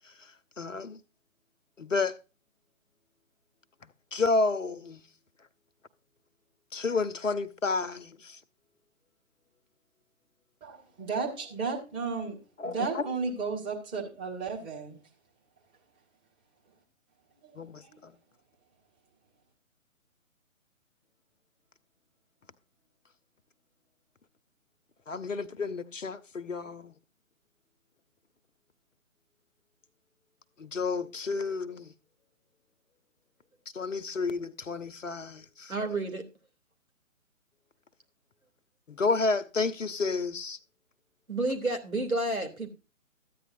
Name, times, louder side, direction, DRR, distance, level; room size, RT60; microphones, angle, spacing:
voice 1, 0.6-1.0 1.8-2.2 3.8-5.0 6.7-8.4 12.6-13.1 17.5-18.2 25.1-27.0 30.6-31.9 33.7-35.7 38.9-40.6, left 3 dB, 65° left, 1.0 m, -31 dB
voice 2, 10.6-12.4 12.6-15.0 17.4-17.5 17.9-18.0, right 4 dB, 10° right, 1.7 m, -33 dB
voice 3, 35.7-36.2 41.3-42.7, right 2 dB, 80° right, 3.2 m, -30 dB
14.0 x 9.5 x 2.6 m
figure-of-eight pair, 140°, 42 cm